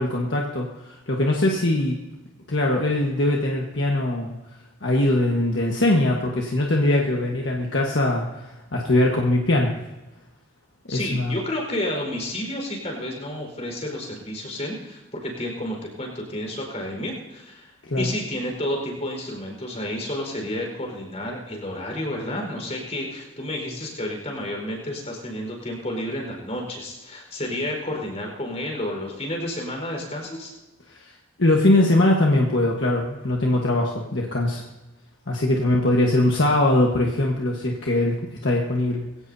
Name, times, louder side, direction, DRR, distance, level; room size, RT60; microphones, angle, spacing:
voice 1, 0.0-2.0 2.5-4.4 4.8-9.7 10.9-11.3 17.8-18.1 30.9-31.1 31.4-34.6 35.3-38.2 38.4-39.0, left 1 dB, 60° left, -1 dB, 1.4 m, -21 dB
voice 2, 10.9-17.7 18.0-30.5, left 1 dB, 35° left, 1 dB, 4.7 m, -31 dB
22.0 x 17.0 x 2.8 m, 1.1 s
head